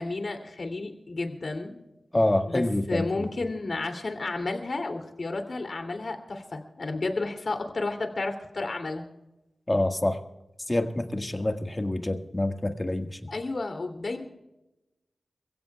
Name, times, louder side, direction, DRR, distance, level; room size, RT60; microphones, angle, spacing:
voice 1, 0.0-1.8 2.5-9.0 13.3-14.2, left 3 dB, 65° left, 4 dB, 2.8 m, -32 dB
voice 2, 2.1-3.1 9.7-10.2 10.7-13.3, left 1 dB, 25° left, 5 dB, 1.7 m, -26 dB
28.5 x 16.0 x 2.4 m, 0.96 s
wide cardioid pair, 65°, 0 cm